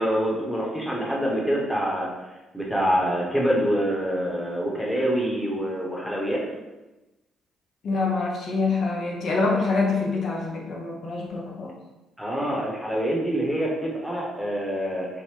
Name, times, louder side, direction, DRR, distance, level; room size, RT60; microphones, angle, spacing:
voice 1, 0.0-2.1 2.5-6.4 12.2-15.2, equal, ahead, -3 dB, 0.8 m, -25 dB
voice 2, 7.8-11.7, left 3 dB, 60° left, -1 dB, 0.5 m, -25 dB
3.4 x 2.0 x 3.0 m, 1.1 s
supercardioid pair, 75°, 0 cm